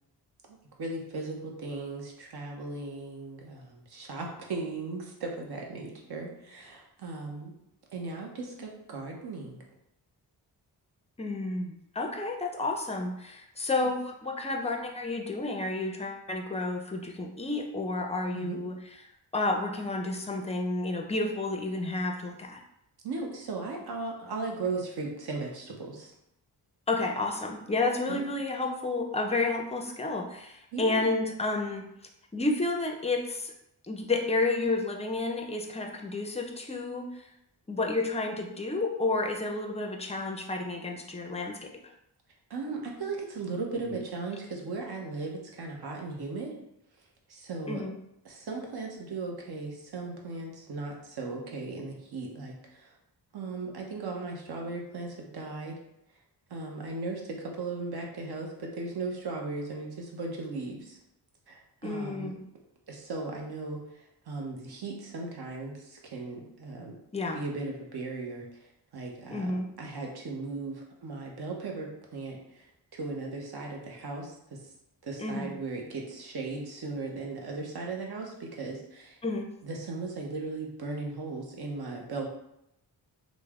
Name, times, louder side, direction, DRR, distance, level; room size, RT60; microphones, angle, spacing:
voice 1, 0.8-7.5 7.9-9.6 13.8-13.9 18.3-18.6 23.0-26.1 28.1-28.3 30.7-31.1 42.5-46.5 47.3-47.8 48.2-52.9 53.3-55.8 56.5-61.0 61.5-62.3 62.9-63.8 64.3-67.0 67.3-68.5 68.9-69.5 69.8-72.6 72.9-74.6 75.0-79.2 79.6-82.3, right 3 dB, 65° right, 0 dB, 0.8 m, -37 dB
voice 2, 11.2-18.8 19.3-22.6 26.9-31.8 32.3-33.5 33.9-37.1 37.7-41.7 43.8-44.0 47.7-48.0 61.8-62.4 67.1-67.4 69.3-69.7 75.2-75.5 79.2-79.5, left 2 dB, 15° left, 2 dB, 0.4 m, -31 dB
3.1 x 2.1 x 3.5 m, 0.80 s
cardioid pair, 80°, 43 cm